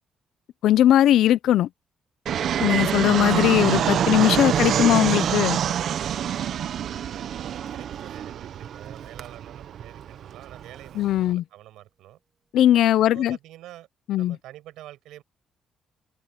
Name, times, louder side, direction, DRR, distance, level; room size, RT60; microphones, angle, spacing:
voice 1, 0.6-1.7 2.6-5.6 11.0-11.4 12.5-13.4 14.1-14.4, left 12 dB, 80° left, 0.6 m, -19 dB
Fixed-wing aircraft airplane, 2.3-11.3, right 9 dB, 65° right, 1.1 m, -26 dB
Strum, 3.3-7.9, right 6 dB, 45° right, 2.1 m, -39 dB
voice 2, 6.8-12.2 12.9-13.9 14.2-15.2, right 14 dB, 90° right, 7.2 m, -47 dB
cardioid pair, 90°, 0 cm